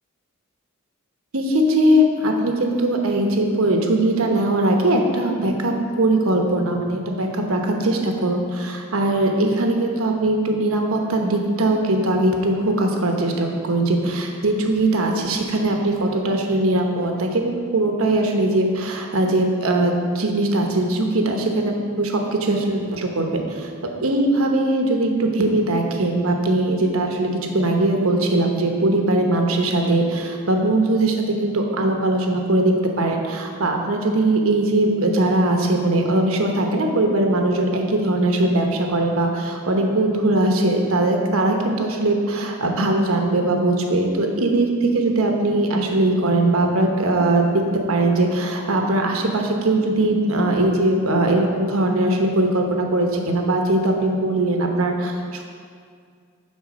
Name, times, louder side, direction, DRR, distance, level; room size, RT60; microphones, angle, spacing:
voice 1, 1.3-23.7 24.0-47.6 47.9-55.4, right 1 dB, 85° right, 2 dB, 1.0 m, -20 dB
9.8 x 4.0 x 6.2 m, 2.1 s
head